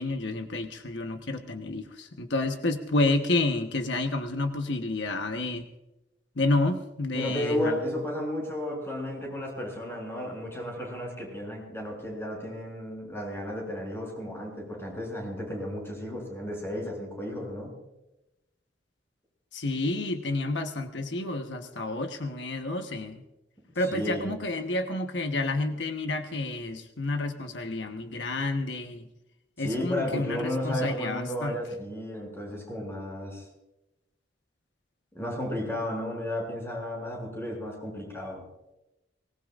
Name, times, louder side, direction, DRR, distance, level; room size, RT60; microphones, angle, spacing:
voice 1, 0.0-5.7 6.4-7.8 19.5-23.2 23.7-29.1 29.6-31.6, left 2 dB, 90° left, 5 dB, 1.2 m, -30 dB
voice 2, 7.1-17.8 23.8-24.3 29.6-33.5 35.1-38.4, left 1 dB, 15° left, -1 dB, 6.9 m, -33 dB
23.5 x 20.0 x 2.5 m, 0.97 s
head